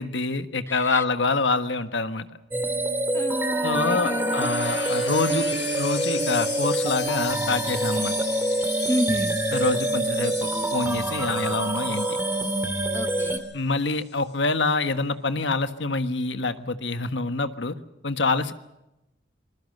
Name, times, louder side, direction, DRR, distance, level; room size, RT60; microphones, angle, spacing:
voice 1, 0.0-2.2 3.6-5.5 5.8-8.2 9.5-12.1 13.5-17.7 18.0-18.5, left 3 dB, 80° left, 10 dB, 1.4 m, -26 dB
voice 2, 0.7-1.0 3.1-4.5 8.9-9.4 12.9-13.4, left 1 dB, 15° left, 10 dB, 1.0 m, -29 dB
sound 1, 2.5-13.4, right 1 dB, 10° right, 2.5 m, -26 dB
sound 2, 3.5-13.6 13.9-14.3, left 8 dB, 65° left, 1.5 m, -38 dB
26.0 x 21.0 x 6.7 m, 0.92 s
head